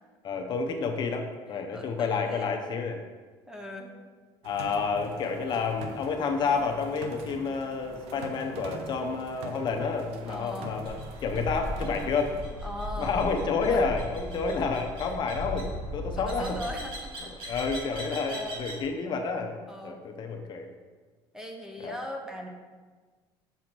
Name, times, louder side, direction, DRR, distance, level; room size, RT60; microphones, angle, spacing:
voice 1, 0.2-3.0 4.4-12.3 13.0-16.6 17.5-19.5 19.8-20.7 21.8-22.0, left 4 dB, 45° left, 4 dB, 0.8 m, -30 dB
voice 2, 1.7-2.5 3.5-3.9 10.3-10.7 12.6-13.2 13.7-13.8 15.1-15.2 16.1-17.6 18.3-18.6 19.7-20.0 21.3-22.5, left 1 dB, 5° right, 2 dB, 0.9 m, -39 dB
sound 1, 4.4-12.4, right 4 dB, 75° right, 0.9 m, -44 dB
sound 2, 10.8-18.9, equal, 55° right, 2.0 m, -37 dB
6.2 x 5.7 x 4.5 m, 1.4 s
cardioid pair, 130°, 10 cm